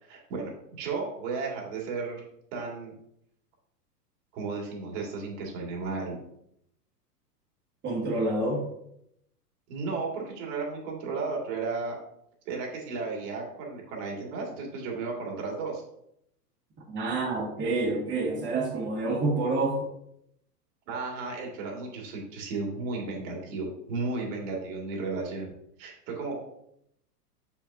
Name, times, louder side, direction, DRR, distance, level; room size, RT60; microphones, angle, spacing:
voice 1, 0.0-2.2 2.5-2.9 4.3-6.2 9.7-11.9 12.5-15.8 20.9-25.5 25.8-26.4, right 4 dB, 50° right, -1 dB, 2.2 m, -34 dB
voice 2, 7.8-8.7 16.9-19.9, right 2 dB, 20° right, -5 dB, 2.0 m, -28 dB
6.7 x 5.8 x 2.7 m, 0.76 s
hypercardioid pair, 120°, 48 cm